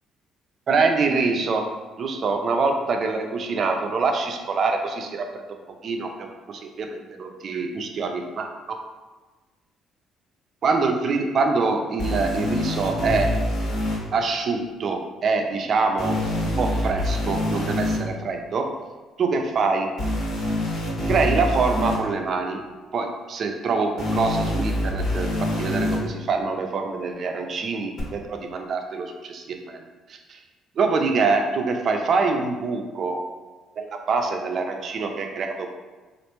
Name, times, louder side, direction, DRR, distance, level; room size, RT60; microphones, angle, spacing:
voice 1, 0.7-1.7 2.0-5.4 5.8-8.8 10.6-13.3 14.1-16.2 16.6-18.7 19.2-19.9 21.1-22.6 22.9-25.3 25.6-29.8 30.1-30.4 30.8-33.2 33.8-35.7, right 4 dB, 55° right, 4 dB, 0.4 m, -25 dB
sound 1, 12.0-14.0 16.0-18.0 20.0-22.0 24.0-26.0 28.0-28.1, left 1 dB, 60° left, 1.1 m, -25 dB
3.2 x 2.5 x 2.9 m, 1.2 s
supercardioid pair, 80°, 0 cm